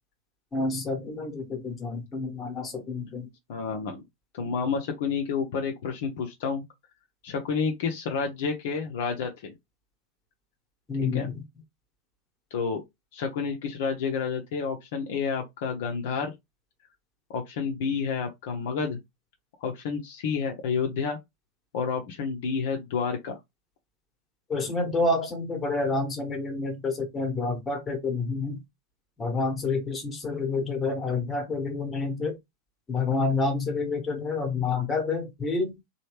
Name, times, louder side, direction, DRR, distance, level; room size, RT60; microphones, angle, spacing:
voice 1, 0.5-3.3 10.9-11.4 24.5-28.6 29.2-32.4 32.9-35.7, left 3 dB, 20° left, 1.1 m, -28 dB
voice 2, 3.5-4.0 4.3-6.6 7.2-9.5 11.1-11.3 12.5-12.8 13.1-16.3 17.3-19.0 19.6-21.2 21.7-23.4, left 5 dB, 50° left, 0.7 m, -30 dB
3.1 x 2.3 x 3.2 m
figure-of-eight pair, 90°, 0 cm